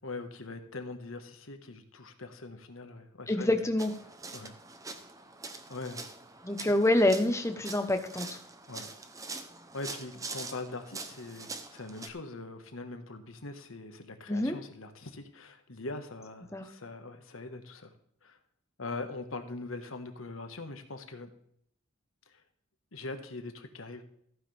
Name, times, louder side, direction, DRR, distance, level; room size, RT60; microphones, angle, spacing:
voice 1, 0.0-3.5 4.3-4.6 5.7-6.1 8.7-8.9 9.7-17.9 18.2-18.4 18.8-21.3 22.3-22.4 22.9-24.0, left 3 dB, 80° left, 7 dB, 1.5 m, -42 dB
voice 2, 3.3-3.9 6.4-8.4 14.3-14.6 16.5-16.7, left 1 dB, 15° left, 7 dB, 0.9 m, -27 dB
sound 1, 3.8-12.1, right 3 dB, 15° right, 0.7 m, -44 dB
14.5 x 9.5 x 3.4 m, 0.69 s
head